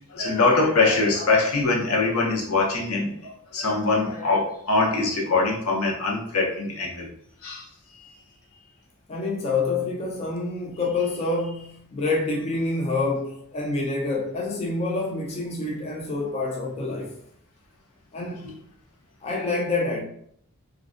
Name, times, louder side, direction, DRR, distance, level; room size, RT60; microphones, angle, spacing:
voice 1, 0.1-7.1 7.4-7.7, left 3 dB, 90° left, 0.7 m, -23 dB
voice 2, 9.1-17.1 18.1-18.5 19.2-20.0, left 3 dB, 30° left, 0.3 m, -27 dB
2.4 x 2.1 x 2.4 m
head